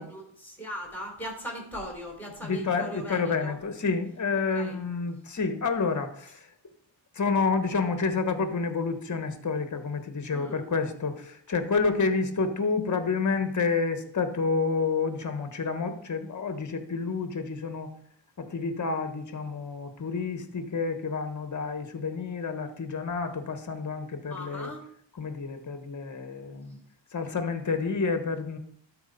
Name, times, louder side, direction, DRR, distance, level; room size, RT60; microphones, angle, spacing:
voice 1, 0.0-3.6 4.3-4.8 10.3-10.6 24.3-24.8, equal, 5° left, 0 dB, 3.9 m, -39 dB
voice 2, 2.4-6.5 7.1-17.9 18.4-24.7 25.2-26.8 27.1-28.6, left 4 dB, 35° left, 8 dB, 1.4 m, -29 dB
12.5 x 4.9 x 4.2 m, 0.64 s
cardioid pair, 80°, 48 cm